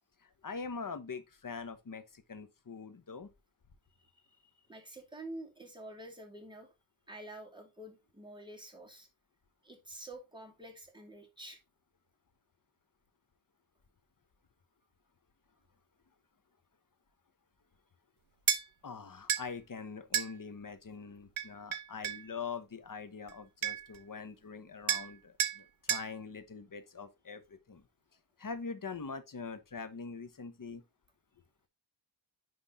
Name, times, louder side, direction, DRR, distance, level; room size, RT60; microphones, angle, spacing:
voice 1, 0.2-3.3 18.8-27.8 28.4-30.8, left 5 dB, 40° left, 1.2 m, -43 dB
voice 2, 4.1-6.7 7.1-9.1 9.6-11.6, right 1 dB, 10° right, 2.4 m, -48 dB
sound 1, 18.5-18.6 19.3-19.5 20.1-20.3 21.4-22.2 23.3-23.4 23.6-24.0 24.9-25.1 25.4-25.6 25.9-26.1, right 9 dB, 70° right, 1.0 m, -31 dB
10.0 x 3.5 x 3.7 m
cardioid pair, 75°, 49 cm